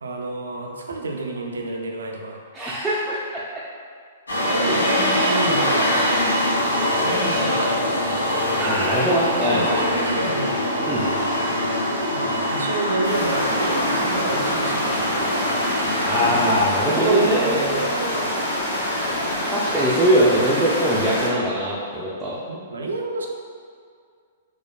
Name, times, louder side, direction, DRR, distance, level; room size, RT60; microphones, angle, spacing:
voice 1, 0.0-2.4 4.5-6.4 7.0-8.0 9.3-11.3 12.1-15.4 16.9-18.3 22.5-23.3, right 2 dB, 80° right, 1 dB, 0.3 m, -29 dB
voice 2, 2.5-3.2 4.6-4.7 8.6-9.8 10.9-11.1 16.1-17.6 19.5-22.4, equal, 5° right, -9 dB, 0.4 m, -21 dB
sound 1, 4.3-16.6, left 1 dB, 90° left, 0.6 m, -23 dB
sound 2, 13.0-21.3, left 1 dB, 70° left, 1.3 m, -26 dB
3.1 x 2.1 x 2.2 m, 2.1 s
hypercardioid pair, 120°, 0 cm